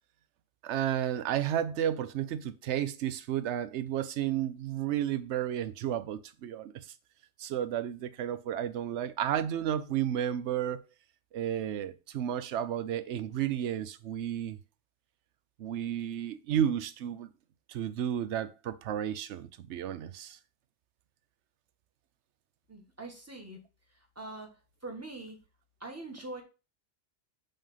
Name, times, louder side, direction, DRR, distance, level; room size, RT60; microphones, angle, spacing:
voice 1, 0.6-6.7 7.4-10.9 11.3-14.6 15.6-17.3 17.7-20.4, right 10 dB, 70° right, 0.9 m, -32 dB
voice 2, 22.7-23.6 24.1-24.5 24.8-25.4 25.8-26.4, right 2 dB, 10° right, 1.4 m, -42 dB
5.4 x 3.6 x 5.4 m
omnidirectional pair, 1.3 m